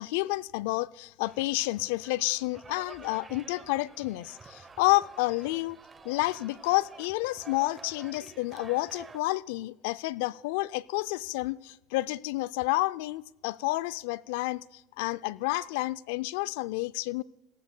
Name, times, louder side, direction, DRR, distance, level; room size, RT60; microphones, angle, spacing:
voice 1, 0.0-5.8 6.0-17.2, left 20 dB, 75° left, 0.3 m, -30 dB
sound 1, 1.2-9.2, right 4 dB, 20° right, 0.8 m, -50 dB
18.0 x 15.0 x 2.2 m
hypercardioid pair, 90°, 0 cm